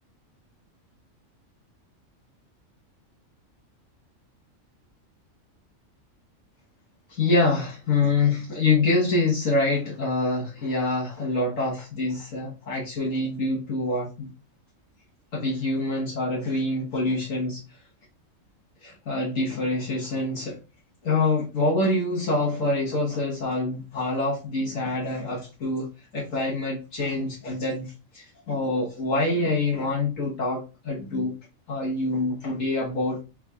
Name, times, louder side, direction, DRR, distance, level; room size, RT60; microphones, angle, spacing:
voice 1, 7.1-14.3 15.3-17.6 18.8-20.6 21.0-25.9 26.1-31.3 31.7-33.2, left 2 dB, 75° left, -4 dB, 1.6 m, -26 dB
5.8 x 3.6 x 2.3 m, 0.31 s
omnidirectional pair, 1.4 m